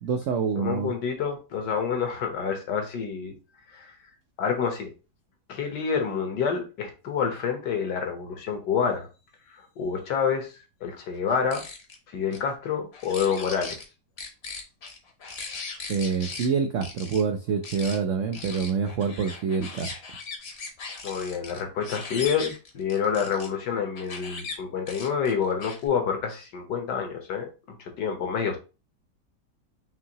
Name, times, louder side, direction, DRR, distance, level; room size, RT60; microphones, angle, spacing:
voice 1, 0.0-1.0 15.9-19.9, right 6 dB, 80° right, 0.7 m, -26 dB
voice 2, 0.6-3.3 3.7-4.0 4.4-4.9 5.5-9.1 9.8-11.6 12.1-13.8 21.0-27.4 27.8-28.6, left 6 dB, 75° left, 1.6 m, -28 dB
sound 1, 11.3-12.0 12.3-12.4 12.9-13.8 14.2-16.5 16.8-17.2 17.6-18.0 18.3-23.5 24.0-24.5 24.9-25.9, left 4 dB, 45° left, 0.9 m, -38 dB
5.6 x 2.7 x 2.8 m
omnidirectional pair, 1.8 m